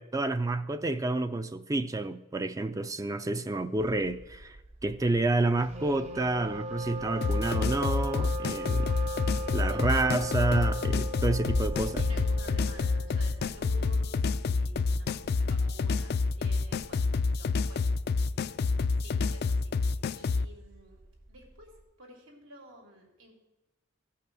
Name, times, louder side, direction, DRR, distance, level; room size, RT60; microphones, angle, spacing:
voice 1, 0.0-4.6 4.8-8.9 9.5-12.0, right 2 dB, 15° right, 0.4 m, -29 dB
Thunder, 3.7-21.8, right 1 dB, 70° right, 2.4 m, -45 dB
Wind instrument woodwind instrument, 5.6-13.5, right 1 dB, 35° right, 0.7 m, -38 dB
sound 1, 7.2-20.5, left 4 dB, 55° left, 0.3 m, -28 dB
voice 2, 11.8-18.4 19.0-21.0 21.3-21.7 22.0-23.3, right 1 dB, 85° right, 3.1 m, -52 dB
16.0 x 5.8 x 6.1 m
head